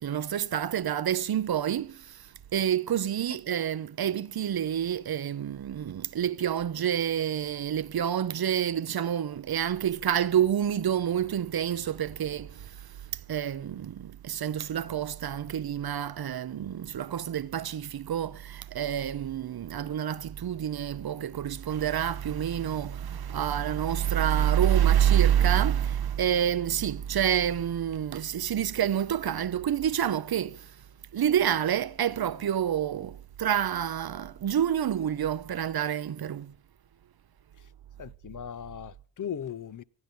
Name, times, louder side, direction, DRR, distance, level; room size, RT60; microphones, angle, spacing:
voice 1, 0.0-30.8 31.1-36.5, right 10 dB, 65° right, 0.8 m, -28 dB
voice 2, 38.0-39.8, left 8 dB, 50° left, 0.6 m, -38 dB
19.0 x 12.0 x 5.4 m
cardioid pair, 70°, 41 cm